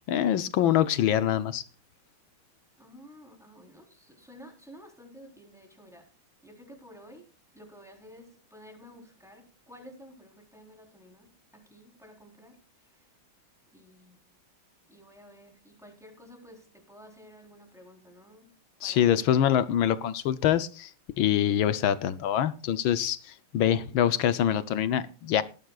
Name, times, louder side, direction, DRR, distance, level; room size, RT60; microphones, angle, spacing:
voice 1, 0.1-1.6 18.8-20.9 21.2-25.4, left 10 dB, 70° left, 1.5 m, -25 dB
voice 2, 2.8-6.1 6.4-7.3 7.5-13.1 13.7-14.2 14.9-18.5 18.8-19.2, equal, ahead, 3.8 m, -52 dB
18.5 x 13.0 x 2.4 m
omnidirectional pair, 2.3 m